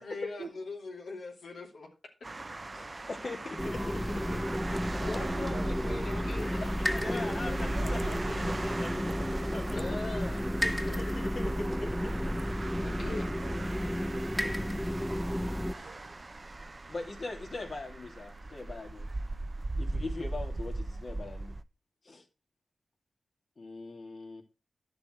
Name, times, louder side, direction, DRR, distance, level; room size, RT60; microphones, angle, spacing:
voice 1, 0.0-1.9 5.0-8.4 9.7-11.0 12.8-13.3, left 3 dB, 80° left, 3.0 m, -41 dB
sound 1, 2.2-21.6, right 2 dB, 40° right, 0.7 m, -39 dB
voice 2, 2.7-4.6 6.9-9.8 10.8-12.1 12.6-12.8 13.2-13.3 15.7-15.9 16.9-19.1 19.8-21.6 22.0-22.2 23.6-24.4, left 2 dB, 60° left, 2.7 m, -41 dB
sound 2, 3.5-9.2, left 2 dB, 40° left, 1.7 m, -51 dB
sound 3, 3.6-15.7, equal, 5° left, 0.5 m, -32 dB
voice 3, 5.0-6.0 13.0-14.9 15.6-16.1, right 5 dB, 85° right, 1.5 m, -47 dB
10.5 x 6.9 x 4.6 m
cardioid pair, 50°, 0 cm